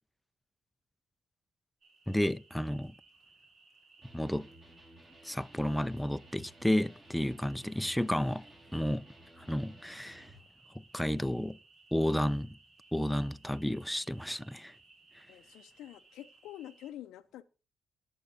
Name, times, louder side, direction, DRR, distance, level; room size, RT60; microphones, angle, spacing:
sound 1, 1.8-16.9, right 3 dB, 55° right, 2.4 m, -61 dB
voice 1, 2.1-2.9 4.1-4.5 5.2-8.4 8.7-9.0 9.4-10.3 10.9-11.6 11.9-12.6 12.9-14.7, equal, 5° left, 0.4 m, -31 dB
Electric guitar, 4.0-10.4, right 1 dB, 25° right, 3.7 m, -57 dB
voice 2, 15.3-17.4, left 12 dB, 90° left, 0.5 m, -47 dB
19.5 x 7.0 x 2.7 m
cardioid pair, 90°, 0 cm